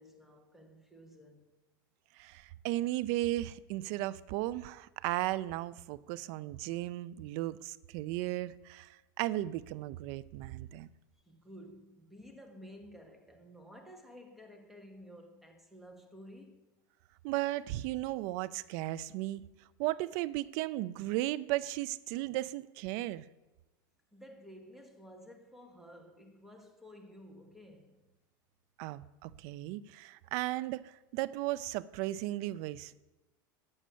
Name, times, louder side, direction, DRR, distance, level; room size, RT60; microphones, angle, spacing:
voice 1, 0.0-1.5 11.2-16.7 24.1-28.1, equal, ahead, 1.2 m, -53 dB
voice 2, 2.2-10.9 17.2-19.4 19.8-23.2 28.8-32.9, right 16 dB, 55° right, 0.4 m, -35 dB
8.6 x 6.3 x 6.8 m
supercardioid pair, 125°, 11 cm